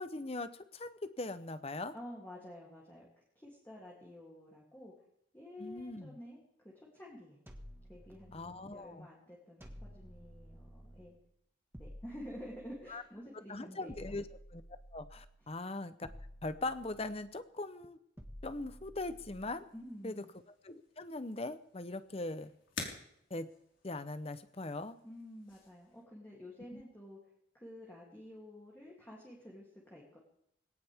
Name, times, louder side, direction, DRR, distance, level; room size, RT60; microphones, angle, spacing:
voice 1, 0.0-1.9 5.6-6.2 8.3-9.1 12.9-13.0 13.5-14.3 14.5-14.6 14.9-16.1 16.4-18.0 18.4-19.7 20.0-20.2 20.6-22.5 23.3-23.5 23.8-25.0 26.7-26.8, left 2 dB, 30° left, 12 dB, 0.8 m, -40 dB
voice 2, 1.9-3.1 3.3-4.9 5.3-7.4 7.9-9.7 9.9-11.1 11.8-13.9 19.7-20.3 25.0-27.2 27.5-30.2, left 1 dB, 10° left, -4 dB, 2.9 m, -50 dB
sound 1, 7.5-8.8 9.6-11.2 11.7-13.2 13.9-15.5 16.0-17.4 18.2-19.8, equal, 10° right, 1.7 m, -53 dB
sound 2, 19.1-26.0, left 4 dB, 75° left, 4.5 m, -51 dB
20.5 x 18.0 x 3.6 m, 0.73 s
head